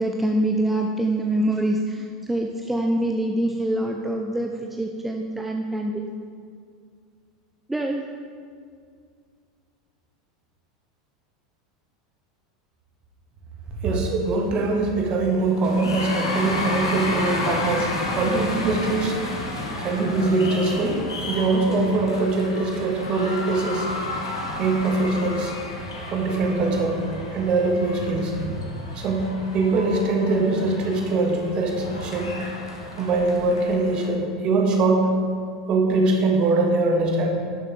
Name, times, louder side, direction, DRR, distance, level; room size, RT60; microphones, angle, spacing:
voice 1, 0.0-6.0 7.7-8.0, right 1 dB, 5° right, 2 dB, 0.6 m, -25 dB
voice 2, 13.8-19.2 19.8-23.9 24.6-25.5 26.1-27.0 27.3-28.3 28.9-32.4 32.9-35.1 35.7-37.3, right 3 dB, 40° right, 2 dB, 1.5 m, -22 dB
sound 1, 15.4-34.0, left 2 dB, 75° left, 1.4 m, -32 dB
11.0 x 7.0 x 3.7 m, 2.2 s
figure-of-eight pair, 80°, 2 cm